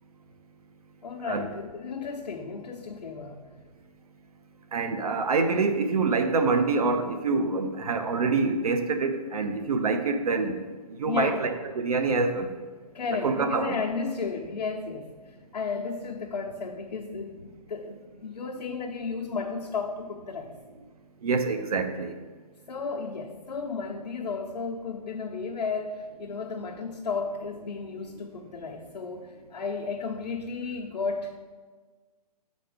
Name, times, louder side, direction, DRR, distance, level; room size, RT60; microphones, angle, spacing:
voice 1, 1.0-3.4 11.0-11.4 12.9-15.1 15.5-20.5 22.7-31.4, left 4 dB, 90° left, -4 dB, 0.9 m, -33 dB
voice 2, 4.7-10.6 10.9-12.5 13.2-13.8 21.2-22.2, right 4 dB, 65° right, 7 dB, 0.7 m, -26 dB
6.9 x 4.2 x 4.9 m, 1.4 s
hypercardioid pair, 170°, 20 cm